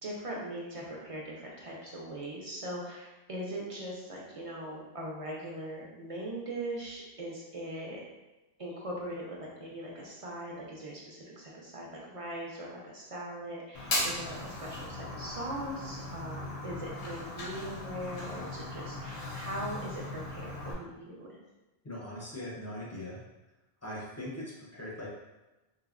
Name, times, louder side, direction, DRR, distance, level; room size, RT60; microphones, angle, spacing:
voice 1, 0.0-8.0 8.6-21.4, right 1 dB, 45° right, -4 dB, 0.4 m, -40 dB
Fire, 13.7-20.7, left 2 dB, 90° left, 0.9 m, -38 dB
voice 2, 21.8-23.2 23.8-25.1, left 1 dB, 20° left, -5 dB, 0.4 m, -40 dB
3.4 x 2.0 x 2.4 m, 1.1 s
omnidirectional pair, 1.0 m